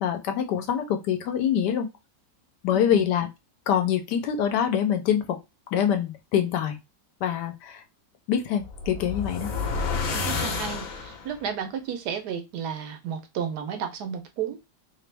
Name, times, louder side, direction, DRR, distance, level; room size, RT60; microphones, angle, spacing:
voice 1, 0.0-1.9 2.6-3.3 3.7-5.2 5.7-6.8 7.2-7.8 8.3-9.5, left 9 dB, 80° left, 7 dB, 1.2 m, -25 dB
voice 2, 2.7-3.1 10.1-14.6, right 7 dB, 75° right, 6 dB, 1.3 m, -33 dB
sound 1, 8.6-11.4, left 4 dB, 60° left, 1.1 m, -30 dB
3.1 x 2.9 x 3.3 m, 0.24 s
omnidirectional pair, 1.8 m